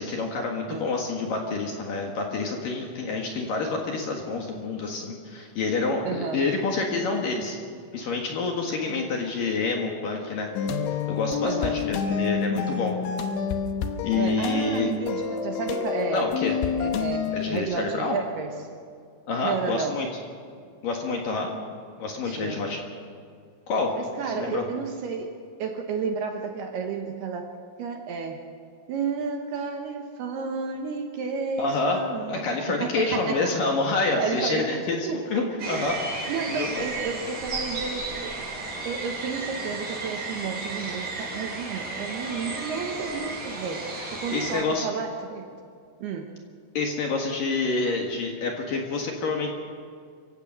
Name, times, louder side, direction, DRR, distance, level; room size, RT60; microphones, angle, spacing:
voice 1, 0.0-7.6 7.9-13.0 14.0-14.9 16.1-16.5 17.3-18.2 19.3-20.1 20.8-21.5 22.0-22.8 23.7-24.0 24.2-24.6 31.6-32.0 32.3-35.0 35.3-36.8 44.0-44.9 46.7-49.5, left 3 dB, 60° left, 1 dB, 2.7 m, -28 dB
voice 2, 6.0-6.4 8.9-9.2 11.4-11.9 14.1-16.3 16.8-18.5 19.4-20.0 22.2-22.7 23.9-27.5 27.8-28.5 28.9-33.5 34.2-35.9 36.3-38.4 38.8-45.5 46.0-46.4, right 5 dB, 70° right, 3 dB, 2.7 m, -32 dB
sound 1, 10.5-17.6, left 6 dB, 75° left, 3.3 m, -28 dB
sound 2, 35.6-44.6, right 3 dB, 40° right, 6.3 m, -34 dB
26.5 x 16.5 x 6.5 m, 2.2 s
omnidirectional pair, 5.7 m